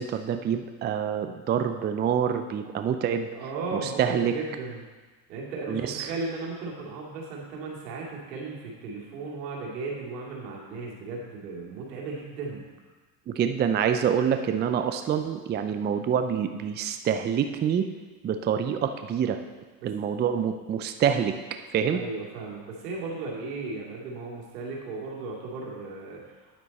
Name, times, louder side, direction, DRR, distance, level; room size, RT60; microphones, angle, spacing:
voice 1, 0.0-3.3 4.0-4.3 5.7-6.1 13.3-17.9 18.2-19.4 19.8-21.3 21.7-22.0, right 8 dB, 25° right, 7 dB, 0.5 m, -26 dB
voice 2, 3.3-4.9 5.3-12.7 19.8-19.9 21.9-26.6, right 3 dB, 85° right, -2 dB, 2.5 m, -36 dB
9.6 x 7.5 x 4.1 m, 1.3 s
supercardioid pair, 100°, 47 cm